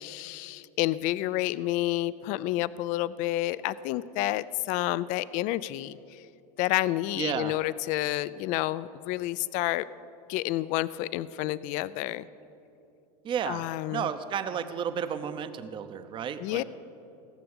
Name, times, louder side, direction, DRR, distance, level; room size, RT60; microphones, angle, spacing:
voice 1, 0.0-6.2 6.6-9.9 10.3-12.2 13.5-14.1 16.4-16.6, left 16 dB, 40° left, 18 dB, 0.4 m, -29 dB
voice 2, 7.2-7.6 13.2-16.6, right 8 dB, 25° right, 10 dB, 0.7 m, -32 dB
17.5 x 6.9 x 8.7 m, 2.8 s
supercardioid pair, 145°, 19 cm